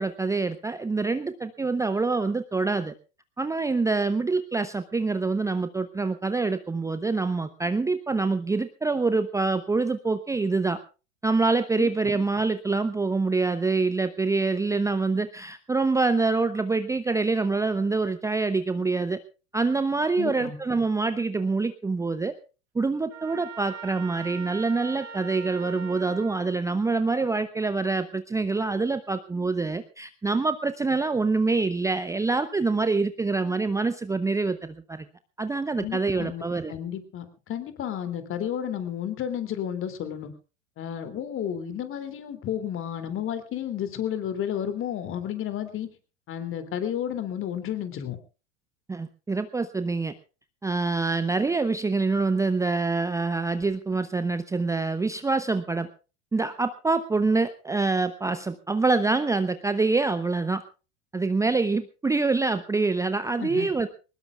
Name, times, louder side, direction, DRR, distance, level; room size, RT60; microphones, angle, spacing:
voice 1, 0.0-2.9 3.4-10.8 11.2-19.2 19.5-22.3 22.7-35.1 35.4-36.7 48.9-50.1 50.6-55.9 56.3-60.6 61.1-63.9, right 3 dB, 10° right, 11 dB, 0.7 m, -25 dB
voice 2, 20.2-20.6 35.8-36.4 36.7-40.3 40.8-45.9 46.3-48.2 63.4-63.7, left 9 dB, 35° left, 9 dB, 2.8 m, -32 dB
Trumpet, 23.1-26.5, right 7 dB, 70° right, 7.4 m, -41 dB
22.5 x 20.0 x 2.4 m, 0.33 s
figure-of-eight pair, 80°, 36 cm